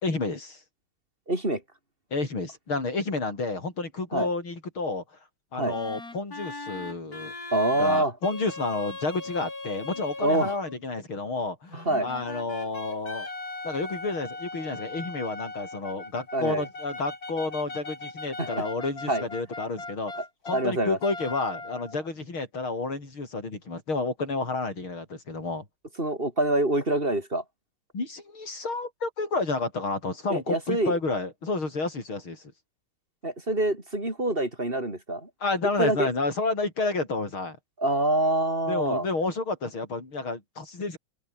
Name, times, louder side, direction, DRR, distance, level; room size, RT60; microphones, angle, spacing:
voice 1, 0.0-0.6 2.1-5.0 5.5-7.3 7.8-13.3 13.6-20.1 20.4-25.6 27.9-32.5 35.4-37.6 38.7-41.0, left 3 dB, 80° left, 6.7 m, -30 dB
voice 2, 1.3-1.6 4.1-4.3 5.6-5.8 7.5-8.1 10.2-10.5 11.7-12.1 16.3-16.7 18.4-18.7 19.1-19.3 20.2-20.3 20.5-21.0 26.0-27.4 30.3-31.0 33.2-35.3 35.8-36.1 37.8-39.1, right 1 dB, 25° right, 5.4 m, -25 dB
sound 1, 5.7-10.8 11.7-20.7 21.0-22.1, left 2 dB, 45° left, 5.7 m, -39 dB
open air
omnidirectional pair, 2.2 m